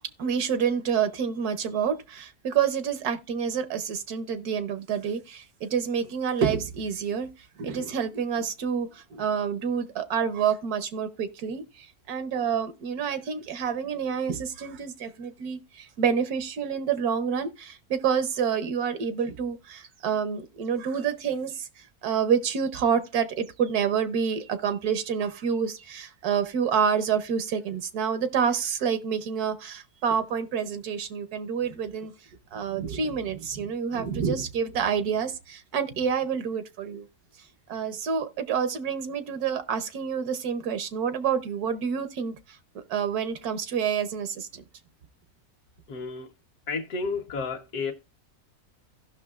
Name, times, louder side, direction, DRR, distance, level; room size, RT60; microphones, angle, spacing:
voice 1, 0.2-7.3 7.6-21.7 22.0-32.1 32.5-37.1 37.7-42.4 42.7-44.6, right 7 dB, 80° right, 1.4 m, -28 dB
voice 2, 45.9-46.3 46.7-47.9, left 4 dB, 70° left, 1.4 m, -31 dB
16.0 x 6.0 x 2.4 m
omnidirectional pair, 1.6 m